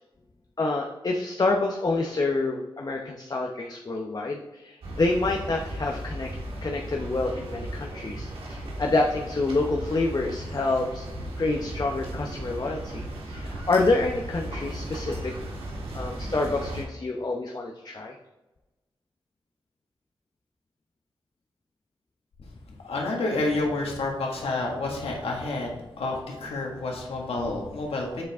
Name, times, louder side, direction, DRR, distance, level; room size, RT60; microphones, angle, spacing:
voice 1, 0.6-6.3 6.6-11.1 11.4-15.3 15.9-18.1, left 2 dB, 45° left, 1 dB, 0.8 m, -27 dB
sound 1, 4.8-16.8, right 1 dB, 85° right, 1.7 m, -36 dB
voice 2, 22.8-28.2, left 2 dB, 85° left, -1 dB, 1.6 m, -29 dB
7.5 x 4.6 x 3.5 m, 1.1 s
cardioid pair, 55°, 10 cm